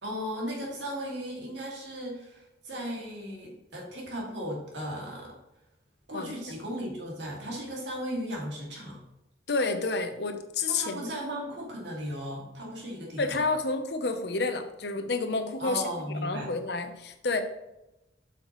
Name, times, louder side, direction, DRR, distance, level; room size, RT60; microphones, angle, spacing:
voice 1, 0.0-5.3 6.1-9.0 10.7-13.4 15.6-16.5, equal, 75° right, -2 dB, 2.3 m, -36 dB
voice 2, 9.5-11.1 13.2-15.8 16.2-17.4, left 3 dB, 65° left, 7 dB, 0.8 m, -29 dB
7.8 x 5.8 x 3.1 m, 0.93 s
head